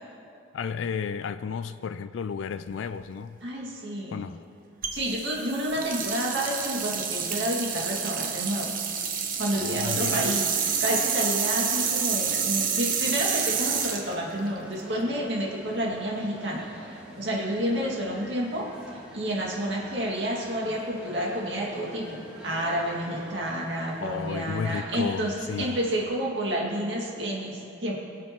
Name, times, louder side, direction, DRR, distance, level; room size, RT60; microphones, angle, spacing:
voice 1, 0.5-3.4 4.1-4.4 9.5-10.3 24.0-25.8, left 6 dB, 75° left, 12 dB, 0.3 m, -33 dB
voice 2, 3.4-4.2 4.9-8.8 9.4-18.7 19.1-28.0, equal, 60° right, -3 dB, 2.2 m, -30 dB
sound 1, 4.8-15.0, right 7 dB, 45° right, 0.9 m, -28 dB
sound 2, 13.0-26.0, equal, 5° right, 2.1 m, -46 dB
21.5 x 7.5 x 3.0 m, 2.6 s
head